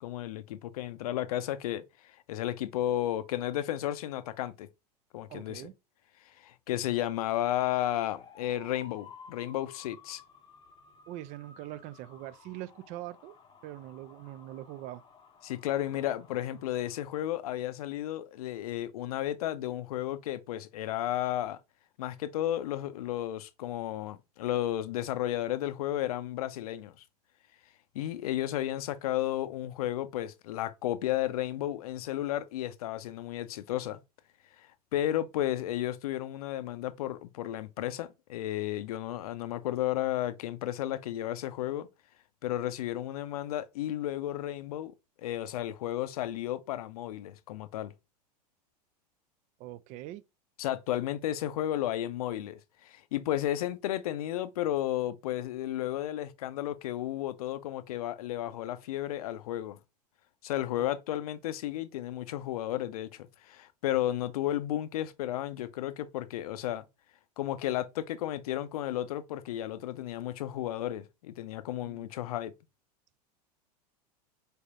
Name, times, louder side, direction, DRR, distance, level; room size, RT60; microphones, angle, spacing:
voice 1, 0.0-4.7 5.1-5.6 6.3-10.2 15.4-21.6 22.0-27.0 27.9-34.0 34.6-41.9 42.4-44.9 45.2-47.9 50.6-59.8 60.4-66.9 67.4-72.5, left 13 dB, 65° left, 0.5 m, -33 dB
voice 2, 5.3-5.7 11.1-13.3 13.6-15.0 49.6-50.2 60.8-60.9 71.8-72.1, right 15 dB, 35° right, 0.4 m, -43 dB
sound 1, 7.8-17.0, left 5 dB, 20° left, 0.7 m, -55 dB
4.2 x 3.4 x 2.4 m
figure-of-eight pair, 90°, 21 cm